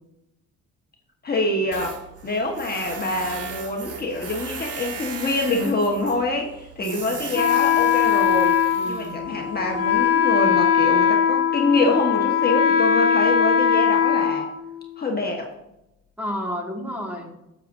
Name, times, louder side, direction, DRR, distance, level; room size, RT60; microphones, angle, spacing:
voice 1, 1.2-8.6 8.8-14.5 15.0-15.5, left 2 dB, 30° left, 0 dB, 1.4 m, -25 dB
Tools, 1.7-10.0, right 5 dB, 55° right, 1.4 m, -37 dB
voice 2, 6.8-7.1 8.7-9.3 16.2-17.3, equal, 5° right, 0 dB, 2.0 m, -31 dB
Wind instrument woodwind instrument, 7.3-15.1, left 7 dB, 50° left, 1.5 m, -20 dB
10.0 x 7.6 x 2.7 m, 0.89 s
cardioid pair, 90°, 30 cm